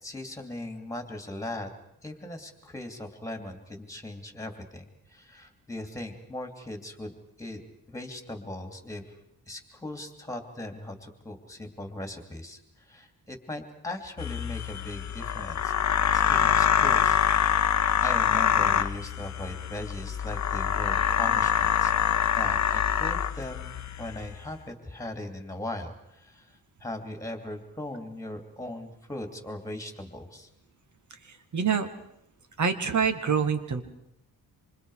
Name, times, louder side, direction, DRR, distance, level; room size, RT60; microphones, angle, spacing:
voice 1, 0.0-1.7 2.0-7.1 7.4-7.6 7.9-9.0 9.5-12.6 12.9-15.7 16.1-17.7 18.0-21.9 22.4-26.4 26.8-30.5, left 1 dB, 10° left, 6 dB, 2.8 m, -39 dB
sound 1, 14.2-24.4, left 8 dB, 50° left, 0.9 m, -25 dB
voice 2, 31.5-31.9 32.6-33.8, right 6 dB, 50° right, 8 dB, 2.2 m, -25 dB
27.5 x 26.5 x 4.9 m, 0.78 s
wide cardioid pair, 175°, 37 cm